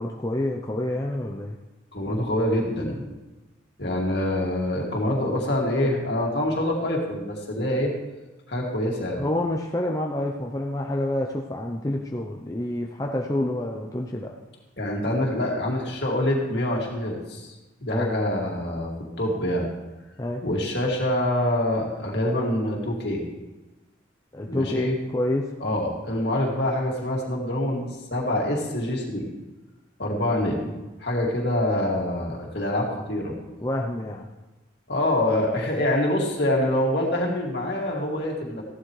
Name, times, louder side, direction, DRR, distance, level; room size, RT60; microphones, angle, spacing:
voice 1, 0.0-1.6 9.2-14.3 17.9-18.1 20.2-20.4 24.3-25.5 33.6-34.3, left 1 dB, 20° left, 1 dB, 0.6 m, -28 dB
voice 2, 1.9-3.0 3.8-7.9 8.5-9.2 14.8-17.5 17.8-18.9 19.2-19.7 20.4-23.2 24.5-25.0 25.6-27.8 28.1-29.3 30.0-30.7 31.0-33.3 34.9-38.6, left 1 dB, 60° left, -1 dB, 2.3 m, -25 dB
15.0 x 11.5 x 3.2 m, 1.1 s
head